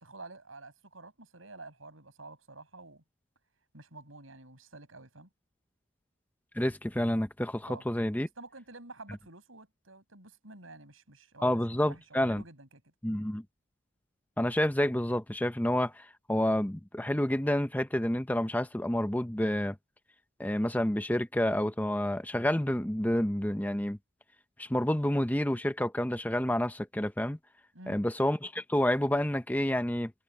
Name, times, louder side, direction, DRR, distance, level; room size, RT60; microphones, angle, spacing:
voice 1, 0.0-3.0 3.7-5.3 7.7-7.8 8.4-12.7 27.7-28.0, right 2 dB, 75° right, 7.0 m, -49 dB
voice 2, 6.5-8.3 11.4-12.4 13.0-13.4 14.4-19.8 20.4-24.0 24.6-27.4 27.9-30.1, left 1 dB, 10° left, 0.8 m, -29 dB
head